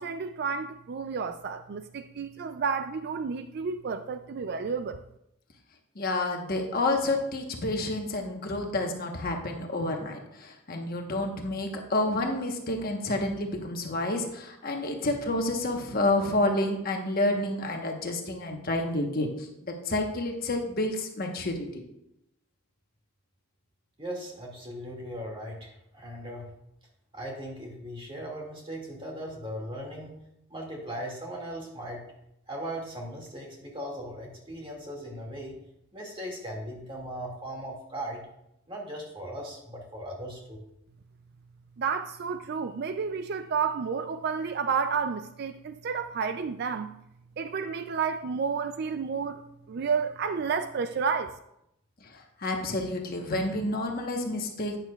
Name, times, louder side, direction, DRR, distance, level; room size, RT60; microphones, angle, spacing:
voice 1, 0.0-5.0 41.8-46.9 47.4-49.4 49.7-51.4, right 5 dB, 50° right, 0.4 m, -31 dB
voice 2, 6.0-21.8 52.0-54.8, left 2 dB, 45° left, 1.1 m, -29 dB
voice 3, 24.0-26.5 27.1-30.2 30.5-32.0 32.5-35.6 35.9-38.2 38.7-40.6, equal, 25° right, 2.1 m, -38 dB
11.0 x 9.2 x 2.3 m
head